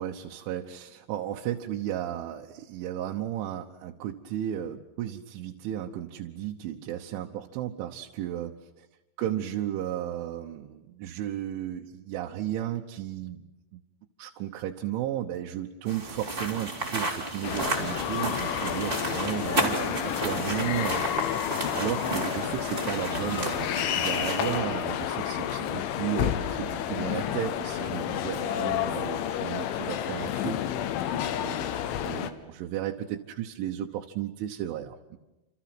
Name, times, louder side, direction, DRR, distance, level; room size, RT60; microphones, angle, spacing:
voice 1, 0.0-8.9 9.2-13.8 14.2-21.1 21.6-30.6 31.4-31.7 32.0-35.2, right 12 dB, 80° right, 1 dB, 3.5 m, -34 dB
sound 1, 15.9-24.6, right 2 dB, 15° right, 2.8 m, -33 dB
sound 2, 17.4-32.3, left 10 dB, 85° left, 3.7 m, -30 dB
28.5 x 27.5 x 6.1 m, 0.99 s
omnidirectional pair, 5.5 m